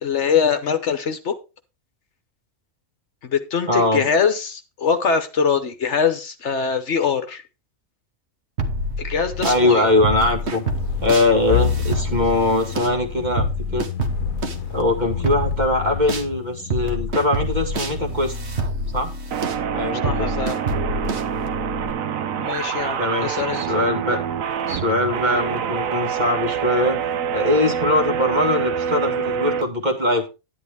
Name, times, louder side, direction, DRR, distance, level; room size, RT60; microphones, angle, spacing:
voice 1, 0.0-1.4 3.2-7.4 9.0-9.9 20.0-20.6 22.4-23.6, left 6 dB, 60° left, 1.2 m, -23 dB
voice 2, 3.7-4.1 9.4-10.6 11.0-13.9 14.7-18.3 18.9-19.1 19.7-20.4 23.0-24.2 24.7-27.0 27.3-30.3, left 1 dB, 35° right, 2.0 m, -21 dB
sound 1, 8.6-9.6 10.0-16.3 16.7-21.9, equal, 55° right, 1.6 m, -27 dB
sound 2, 9.3-18.2, left 9 dB, 80° left, 1.1 m, -30 dB
sound 3, 19.3-29.6, right 7 dB, 80° right, 1.2 m, -26 dB
10.5 x 9.9 x 3.4 m
omnidirectional pair, 1.4 m